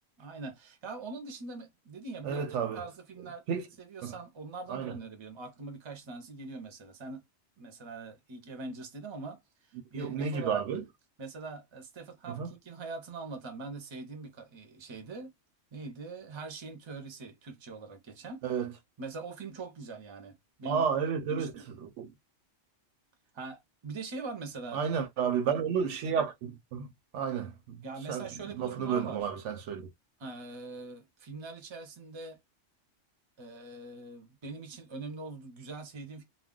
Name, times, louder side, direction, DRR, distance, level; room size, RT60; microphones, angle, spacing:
voice 1, 0.2-2.4 2.7-3.5 3.8-7.2 7.6-9.4 9.9-10.7 11.2-15.3 15.7-18.4 19.0-20.9 21.3-21.6 23.3-24.8 27.8-29.3 30.2-32.4 33.4-36.2, right 3 dB, 30° right, 0.6 m, -42 dB
voice 2, 2.2-2.8 3.5-3.7 4.0-4.1 4.7-5.0 9.9-10.8 12.3-12.5 18.4-18.7 20.7-21.5 22.0-22.1 24.7-26.9 27.1-27.8 28.1-29.9, right 7 dB, 75° right, 0.9 m, -31 dB
2.3 x 2.1 x 3.5 m
omnidirectional pair, 1.3 m